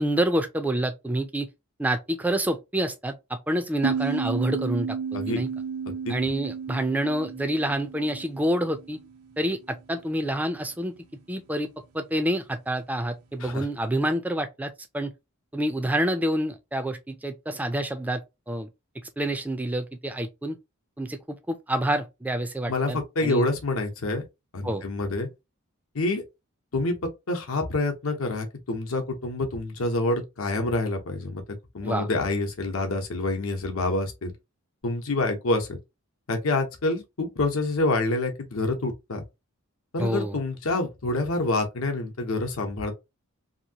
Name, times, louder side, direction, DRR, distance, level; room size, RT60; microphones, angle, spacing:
voice 1, 0.0-1.5 1.8-5.0 5.3-5.5 6.1-9.0 9.4-10.9 11.3-11.7 11.9-15.1 15.5-18.2 18.5-18.7 19.2-20.6 21.0-23.4 24.6-24.8 31.8-32.1 40.0-40.4, right 1 dB, 5° right, 0.4 m, -27 dB
sound 1, 3.8-9.2, right 6 dB, 85° right, 0.6 m, -32 dB
voice 2, 22.7-24.2 24.5-25.3 25.9-26.2 26.7-27.0 27.3-31.4 31.7-34.3 34.8-35.8 36.3-39.2 39.9-42.9, left 2 dB, 75° left, 0.9 m, -27 dB
2.9 x 2.6 x 2.7 m
head